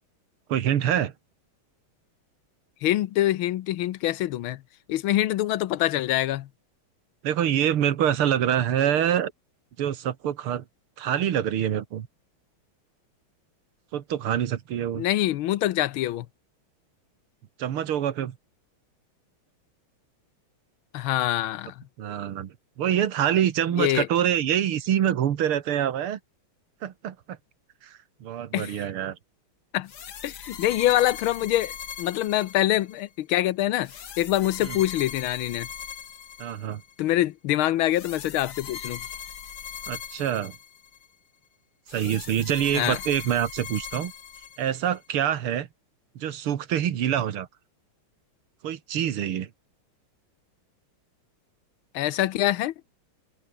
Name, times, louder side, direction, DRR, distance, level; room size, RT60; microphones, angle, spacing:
voice 1, 0.5-1.1 7.2-9.3 9.8-10.6 11.0-12.1 13.9-15.0 17.6-18.4 22.0-26.2 26.8-27.4 27.8-29.2 34.6-34.8 36.4-36.8 39.9-40.6 41.9-44.1 44.6-45.7 46.2-47.5 48.6-49.5, right 10 dB, 85° right, 2.2 m, -26 dB
voice 2, 2.8-4.6 4.9-6.5 14.9-16.3 20.9-21.8 23.8-24.1 28.5-28.8 29.7-29.9 30.2-31.7 32.0-33.9 34.2-35.7 37.0-39.0 42.7-43.0 51.9-52.7, left 14 dB, 80° left, 1.6 m, -25 dB
sound 1, 29.9-33.0 33.8-36.9 37.9-41.1 41.9-45.0, left 8 dB, 55° left, 1.9 m, -40 dB
open air
omnidirectional pair, 2.3 m